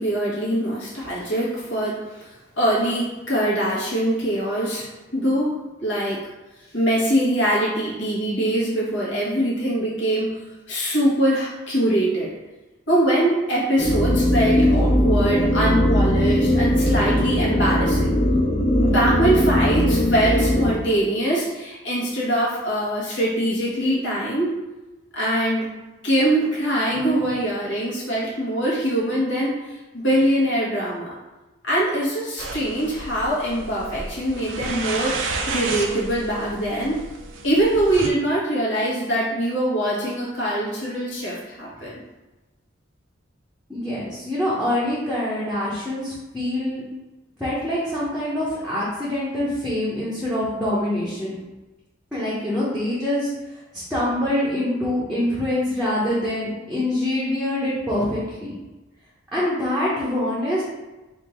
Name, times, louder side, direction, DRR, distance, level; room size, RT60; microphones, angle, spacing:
voice 1, 0.0-2.3 2.6-6.3 6.7-10.4 10.7-12.3 12.9-18.1 18.8-24.6 25.1-25.7 26.0-31.2 31.6-37.0 37.4-42.0, right 1 dB, 65° left, -6 dB, 1.4 m, -23 dB
sound 1, 13.8-20.7, left 1 dB, 25° left, 0.5 m, -19 dB
sound 2, 32.4-38.1, right 3 dB, 65° right, 0.5 m, -32 dB
voice 2, 43.7-46.8 47.4-51.3 52.1-53.3 53.7-58.5 59.3-60.6, left 1 dB, ahead, -9 dB, 0.8 m, -25 dB
3.5 x 2.6 x 4.4 m, 1.1 s
head